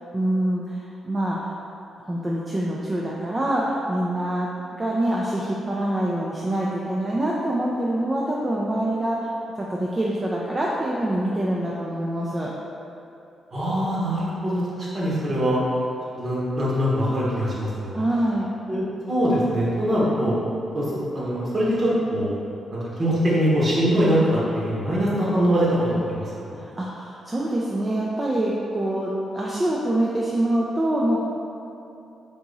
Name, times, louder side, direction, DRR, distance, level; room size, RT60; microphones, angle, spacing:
voice 1, 0.1-1.5 2.0-4.5 4.8-9.3 9.6-12.5 17.9-18.5 26.6-31.2, right 1 dB, 20° right, -4 dB, 0.4 m, -25 dB
voice 2, 13.5-15.6 16.2-18.0 18.7-20.4 20.7-22.3 22.7-26.6, equal, 35° right, -7 dB, 1.1 m, -23 dB
3.6 x 2.9 x 3.9 m, 2.8 s
cardioid pair, 120°, 0 cm